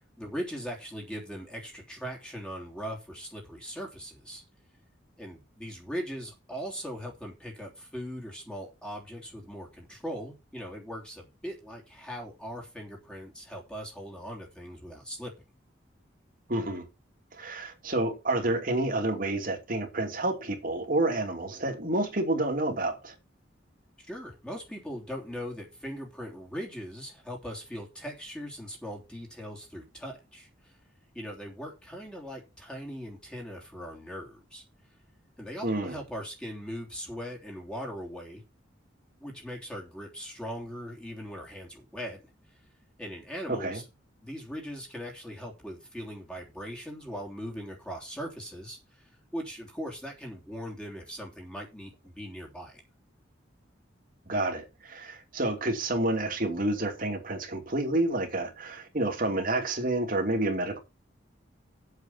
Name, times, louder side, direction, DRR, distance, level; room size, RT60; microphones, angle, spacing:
voice 1, 0.2-4.4 5.2-15.3 24.0-30.7 31.1-34.6 35.4-38.4 39.2-42.3 43.0-43.8 44.2-52.8, equal, 5° left, 3.2 m, -40 dB
voice 2, 16.5-16.9 17.3-23.1 35.6-36.0 43.5-43.8 54.3-60.8, right 2 dB, 45° right, 2.7 m, -29 dB
8.3 x 7.7 x 5.8 m
head